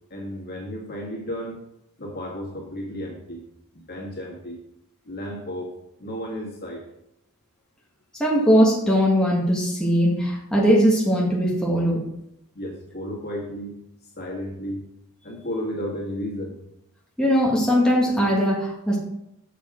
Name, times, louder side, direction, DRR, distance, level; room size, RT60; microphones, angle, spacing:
voice 1, 0.1-1.6 2.0-3.5 3.7-4.6 5.1-5.7 6.0-6.8 12.5-13.7 14.2-14.8 15.2-16.6, equal, 45° left, -1 dB, 2.1 m, -33 dB
voice 2, 8.2-12.0 17.2-19.0, equal, 5° left, -4 dB, 1.3 m, -20 dB
7.6 x 6.7 x 3.7 m, 0.81 s
head